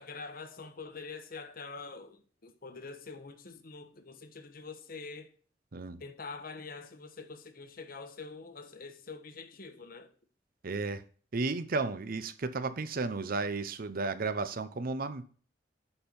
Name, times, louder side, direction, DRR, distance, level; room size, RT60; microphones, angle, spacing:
voice 1, 0.0-5.3 6.0-10.1, left 4 dB, 55° left, 1.1 m, -45 dB
voice 2, 10.6-11.0 11.3-15.2, right 3 dB, 55° right, 0.7 m, -33 dB
9.7 x 4.5 x 5.3 m
head